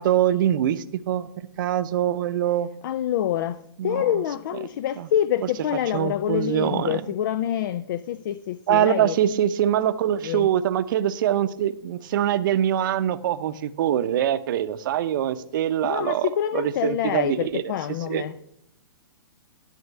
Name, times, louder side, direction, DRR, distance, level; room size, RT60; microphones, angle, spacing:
voice 1, 0.0-2.7 3.8-4.2 5.0-5.1 5.9-7.0 8.7-16.3 16.5-17.6 18.1-18.2, right 11 dB, 55° right, 12 dB, 0.8 m, -24 dB
voice 2, 2.8-9.2 10.2-10.5 15.8-18.4, left 11 dB, 55° left, 15 dB, 0.5 m, -26 dB
11.0 x 4.3 x 8.0 m, 0.74 s
hypercardioid pair, 140°, 13 cm